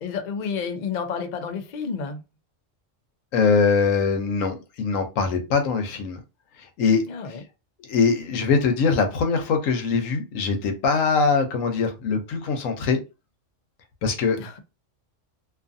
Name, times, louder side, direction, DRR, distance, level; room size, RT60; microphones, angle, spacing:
voice 1, 0.0-2.2 7.1-7.4 14.4-14.6, left 6 dB, 55° left, 0.5 m, -30 dB
voice 2, 3.3-6.2 6.6-7.0 7.3-7.4 7.8-13.0 14.0-14.4, left 5 dB, 85° left, 1.1 m, -22 dB
2.6 x 2.4 x 2.5 m
omnidirectional pair, 1.3 m